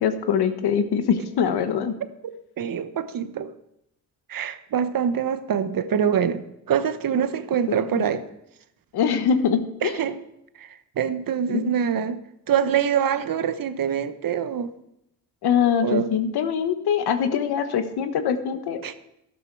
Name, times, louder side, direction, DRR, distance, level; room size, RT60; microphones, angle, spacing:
voice 1, 0.0-2.0 7.7-8.0 8.9-9.9 11.5-11.7 15.4-18.9, left 7 dB, 80° left, 9 dB, 1.3 m, -23 dB
voice 2, 2.2-3.5 4.3-8.2 9.8-10.2 10.6-12.2 12.5-14.7 15.8-16.1 18.8-18.9, right 8 dB, 60° right, 12 dB, 1.1 m, -25 dB
12.5 x 12.0 x 4.7 m, 0.80 s
supercardioid pair, 60°, 38 cm